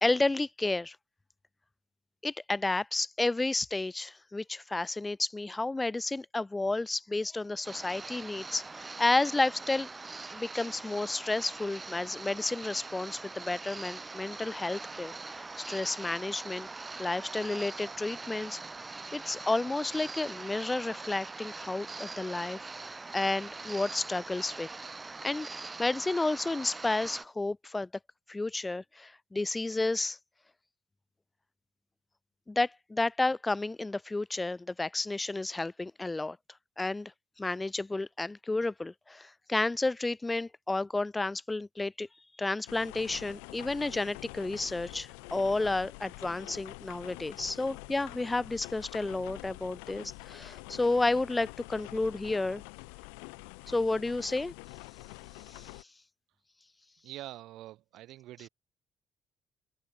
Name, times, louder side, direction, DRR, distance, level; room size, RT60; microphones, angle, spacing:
voice 1, 0.0-1.0 2.2-9.9 10.3-16.7 17.0-18.6 19.1-24.7 25.2-25.5 25.8-27.9 28.3-30.2 32.5-36.4 36.8-37.1 37.4-42.1 42.4-52.6 53.7-54.5 55.5-55.7, left 2 dB, 20° left, 0.9 m, -31 dB
sound 1, 7.6-27.2, right 3 dB, 25° right, 1.5 m, -43 dB
sound 2, 42.7-55.8, left 40 dB or more, 75° left, 0.6 m, -46 dB
voice 2, 57.0-58.5, right 15 dB, 65° right, 2.5 m, -45 dB
open air
figure-of-eight pair, 45°, 0 cm